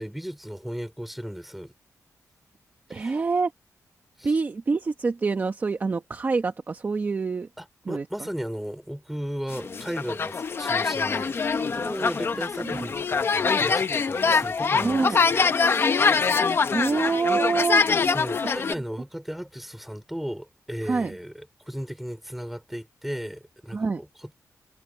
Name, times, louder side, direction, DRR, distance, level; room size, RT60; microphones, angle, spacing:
voice 1, 0.0-1.7 2.9-3.2 4.2-4.3 7.6-11.4 11.7-15.9 16.8-16.9 17.8-24.3, equal, ahead, 4.4 m, -36 dB
voice 2, 2.9-3.5 4.2-7.5 7.9-8.0 12.6-12.9 14.8-15.2 16.6-17.8 18.4-18.5 20.8-21.1 23.7-24.0, right 4 dB, 30° right, 1.1 m, -26 dB
sound 1, 9.5-18.7, left 5 dB, 40° left, 0.8 m, -24 dB
wide cardioid pair, 180°, 6 cm